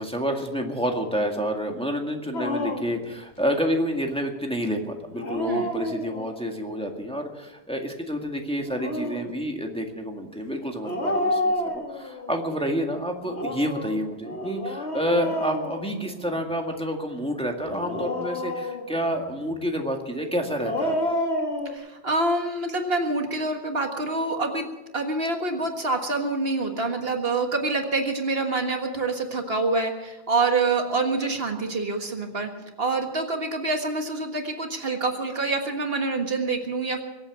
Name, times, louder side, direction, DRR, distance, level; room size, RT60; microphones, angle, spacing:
voice 1, 0.0-21.0, equal, 5° left, 2 dB, 1.8 m, -29 dB
Dog, 2.3-3.0 5.1-6.4 8.5-9.3 10.8-12.3 13.2-16.4 17.7-19.1 20.4-21.7, left 1 dB, 80° left, 2.2 m, -29 dB
voice 2, 5.5-5.8 21.7-24.6 24.9-32.5 32.8-37.0, right 3 dB, 65° right, 4 dB, 1.9 m, -26 dB
23.0 x 8.6 x 7.3 m, 1.1 s
omnidirectional pair, 1.1 m